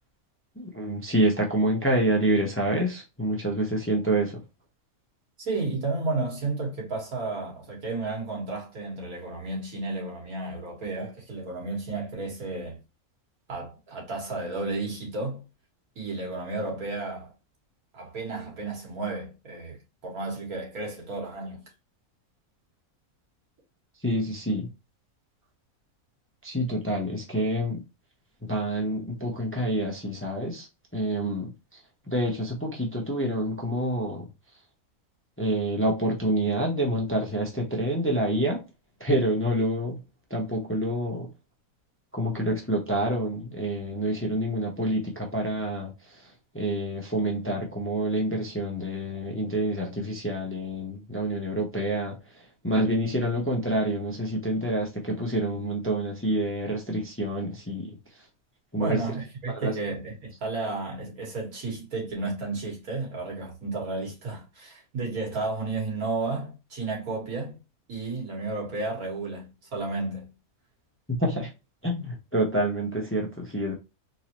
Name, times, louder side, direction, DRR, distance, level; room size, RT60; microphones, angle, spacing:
voice 1, 0.6-4.4 24.0-24.7 26.4-27.8 28.4-30.7 30.9-31.5 32.1-34.3 35.4-38.6 39.0-40.0 40.3-41.3 42.1-46.2 46.5-52.2 52.6-57.9 58.7-59.0 59.6-59.7 71.2-71.5 71.8-73.7, right 1 dB, 10° left, 0.6 m, -27 dB
voice 2, 5.4-12.8 13.5-15.4 16.0-17.3 17.9-21.6 58.8-67.6 67.9-70.3, right 3 dB, 85° right, 2.1 m, -32 dB
3.9 x 2.7 x 2.9 m
omnidirectional pair, 1.5 m